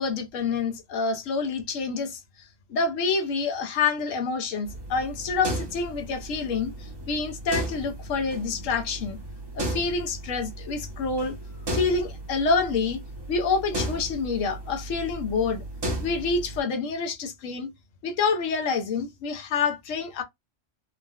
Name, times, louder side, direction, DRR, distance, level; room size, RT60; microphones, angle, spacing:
voice 1, 0.0-2.2 2.7-9.2 9.5-11.3 11.7-13.0 13.3-15.6 16.0-17.7 18.0-20.2, left 4 dB, 85° left, 1.1 m, -27 dB
sound 1, 4.6-16.6, right 1 dB, 30° right, 0.5 m, -35 dB
3.7 x 2.1 x 2.3 m
omnidirectional pair, 1.3 m